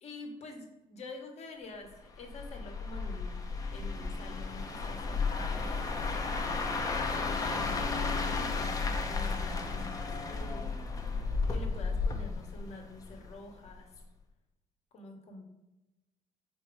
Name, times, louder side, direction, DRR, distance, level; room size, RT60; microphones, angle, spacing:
voice 1, 0.0-3.4 3.7-5.7 6.9-10.8 11.5-13.9 14.9-15.4, left 2 dB, 45° left, 2 dB, 1.3 m, -47 dB
sound 1, 2.2-13.3 13.7-14.0, left 4 dB, 25° left, 0.7 m, -33 dB
5.2 x 4.3 x 4.7 m, 1.0 s
cardioid pair, 150°, 15 cm